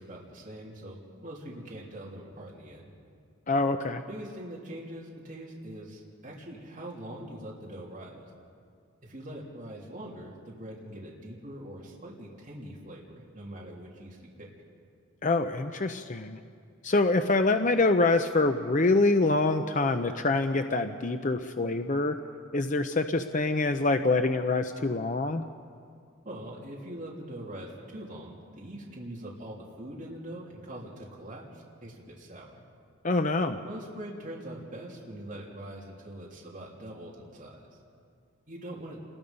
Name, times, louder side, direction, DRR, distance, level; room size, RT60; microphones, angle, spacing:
voice 1, 0.0-2.9 4.0-8.3 9.0-14.5 26.2-32.6 33.6-37.8 38.5-39.0, right 1 dB, 40° right, -4 dB, 3.3 m, -43 dB
voice 2, 3.5-4.0 15.2-16.4 16.8-22.2 22.5-25.4 33.0-33.6, left 3 dB, 40° left, 7 dB, 0.6 m, -25 dB
29.0 x 21.5 x 5.4 m, 2.3 s
head